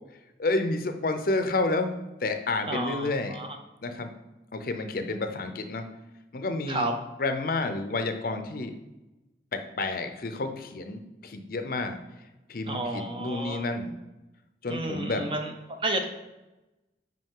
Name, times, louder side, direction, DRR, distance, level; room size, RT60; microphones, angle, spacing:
voice 1, 0.4-3.4 3.8-4.1 4.5-5.9 6.3-6.9 7.2-8.8 9.5-12.0 12.5-13.9 14.6-15.2, left 2 dB, 50° left, 7 dB, 0.6 m, -30 dB
voice 2, 2.7-3.6 6.7-6.9 12.7-13.6 14.7-15.5 15.8-16.0, right 2 dB, 30° right, 5 dB, 0.6 m, -31 dB
5.4 x 5.2 x 3.7 m, 1.0 s
head